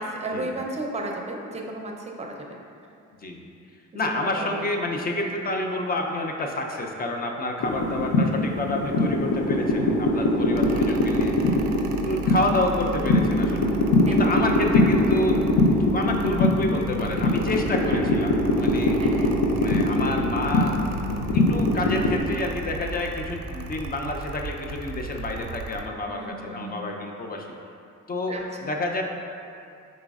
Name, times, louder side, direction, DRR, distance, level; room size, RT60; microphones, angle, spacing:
voice 1, 0.0-1.9 2.2-2.3 4.0-4.6 10.2-10.7 14.1-14.3 17.9-18.1 19.0-19.3 26.1-26.9 28.3-28.4, right 2 dB, 20° right, 0 dB, 0.5 m, -34 dB
voice 2, 3.9-11.6 11.9-13.7 14.1-19.0 19.6-20.8 21.3-27.5 28.1-29.0, left 2 dB, 30° left, 2 dB, 0.5 m, -29 dB
sound 1, 7.6-22.2, left 2 dB, 80° left, 0.6 m, -22 dB
Mechanical fan, 10.5-25.9, right 5 dB, 70° right, 0.4 m, -36 dB
4.9 x 4.1 x 2.4 m, 2.5 s
cardioid pair, 90°, 30 cm